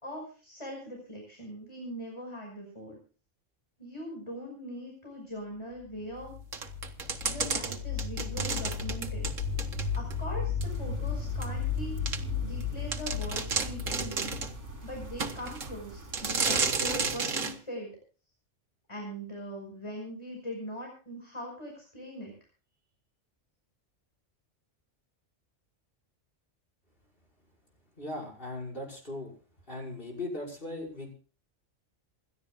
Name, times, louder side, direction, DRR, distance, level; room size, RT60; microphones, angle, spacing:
voice 1, 0.0-3.0 3.8-6.4 7.3-9.3 9.9-14.4 14.8-17.9 18.9-22.3, equal, 25° left, 0 dB, 5.6 m, -41 dB
sound 1, 5.9-15.8, left 6 dB, 75° left, 7.2 m, -35 dB
sound 2, 6.5-10.2 10.6-10.7 11.4-11.5 12.1-12.2 12.6-12.7 12.9-14.6 15.2-15.7 16.1-17.6, right 5 dB, 90° right, 1.9 m, -32 dB
sound 3, 10.6-17.2, right 1 dB, 65° right, 2.9 m, -46 dB
voice 2, 28.0-29.3 29.7-31.1, left 2 dB, 45° left, 1 dB, 6.1 m, -38 dB
28.0 x 12.0 x 2.4 m, 0.37 s
omnidirectional pair, 1.3 m